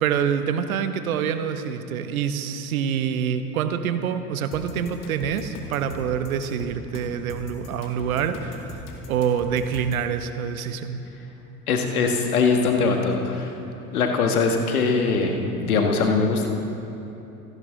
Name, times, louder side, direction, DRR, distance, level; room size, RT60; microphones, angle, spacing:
voice 1, 0.0-11.0, right 8 dB, 70° right, 10 dB, 1.0 m, -26 dB
sound 1, 4.5-10.1, left 3 dB, 45° left, 2.4 m, -39 dB
voice 2, 11.7-13.5 13.9-16.5, left 4 dB, 70° left, 3 dB, 1.7 m, -22 dB
28.0 x 11.0 x 3.6 m, 3.0 s
figure-of-eight pair, 70°, 44 cm